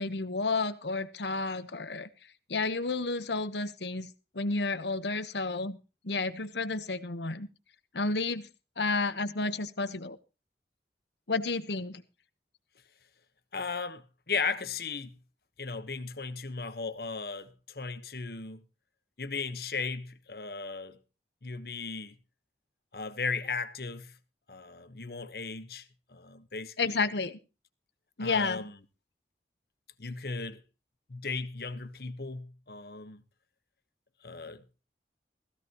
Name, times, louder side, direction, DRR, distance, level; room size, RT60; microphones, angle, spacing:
voice 1, 0.0-2.1 2.5-5.8 6.0-7.5 7.9-8.5 8.8-10.2 11.3-12.0 26.8-27.4 28.2-28.6, left 3 dB, 80° left, 1.2 m, -31 dB
voice 2, 13.5-15.2 15.6-18.6 19.2-21.0 21.4-22.2 22.9-24.1 24.5-27.0 28.2-28.8 30.0-30.6 31.1-33.2 34.2-34.6, left 4 dB, 60° left, 1.3 m, -36 dB
16.0 x 15.5 x 3.0 m
head